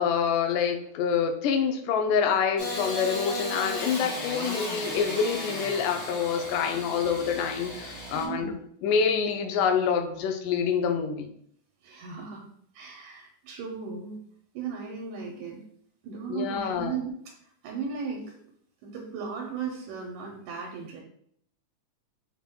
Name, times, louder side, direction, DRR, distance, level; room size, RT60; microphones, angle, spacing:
voice 1, 0.0-8.5 8.8-11.3 16.3-17.0, left 6 dB, 90° left, 6 dB, 2.1 m, -26 dB
Engine starting / Sawing, 2.6-8.3, left 1 dB, 75° left, 0.8 m, -35 dB
voice 2, 8.1-8.6 11.8-12.4 12.7-14.2 14.5-15.6 16.0-17.3 17.6-18.3 18.8-21.0, right 5 dB, 85° right, 0 dB, 2.1 m, -36 dB
5.7 x 3.5 x 2.2 m, 0.67 s
omnidirectional pair, 3.5 m